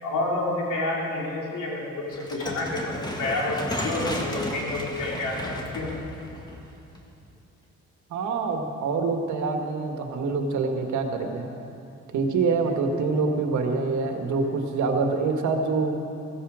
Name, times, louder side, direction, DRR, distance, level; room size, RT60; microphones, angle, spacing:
voice 1, 0.0-5.9, left 2 dB, 85° left, -3 dB, 3.7 m, -29 dB
sound 1, 2.1-7.3, left 1 dB, 15° left, 2.0 m, -34 dB
voice 2, 8.1-11.5 12.1-16.0, right 4 dB, 70° right, 3 dB, 1.8 m, -25 dB
16.5 x 15.5 x 5.0 m, 2.7 s
cardioid pair, 90°, 30 cm